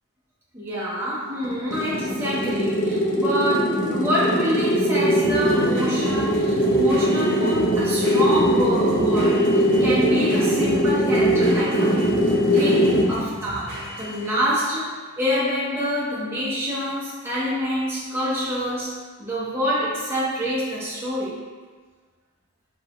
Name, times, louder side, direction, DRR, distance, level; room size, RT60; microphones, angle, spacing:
voice 1, 0.5-12.1 12.5-21.5, equal, 10° right, -8 dB, 0.7 m, -26 dB
sound 1, 1.4-13.2, equal, 60° left, 0.6 m, -21 dB
sound 2, 2.9-14.6, right 1 dB, 45° right, 1.0 m, -36 dB
5.3 x 2.4 x 2.9 m, 1.4 s
head